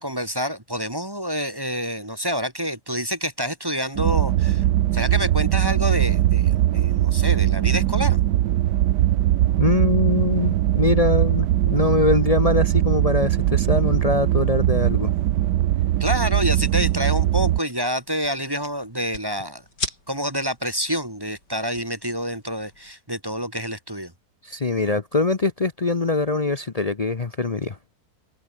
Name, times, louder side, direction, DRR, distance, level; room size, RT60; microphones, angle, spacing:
voice 1, 0.0-4.6 4.9-8.2 16.0-19.6 20.1-24.1, equal, 15° right, 2.0 m, -27 dB
sound 1, 4.0-17.6, right 13 dB, 85° right, 1.4 m, -20 dB
voice 2, 9.6-15.1 24.4-27.8, left 3 dB, 35° left, 0.7 m, -23 dB
sound 2, 16.2-22.9, left 2 dB, 85° left, 8.7 m, -40 dB
omnidirectional pair, 1.8 m